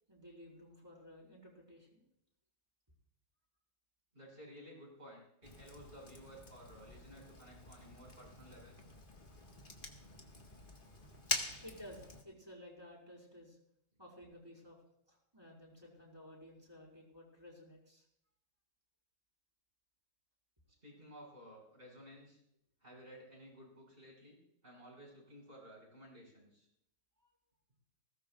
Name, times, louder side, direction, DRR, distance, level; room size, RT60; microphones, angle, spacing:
voice 1, 0.1-2.0 11.6-13.6 14.0-14.8 15.1-18.0, left 1 dB, 15° right, -3 dB, 5.2 m, -55 dB
voice 2, 4.1-8.8 20.8-22.4 22.8-24.4 24.6-26.7, equal, 40° right, -2 dB, 6.3 m, -55 dB
Fire, 5.4-12.2, left 2 dB, 35° left, 1.8 m, -45 dB
21.0 x 17.5 x 2.4 m, 0.76 s
omnidirectional pair, 1.5 m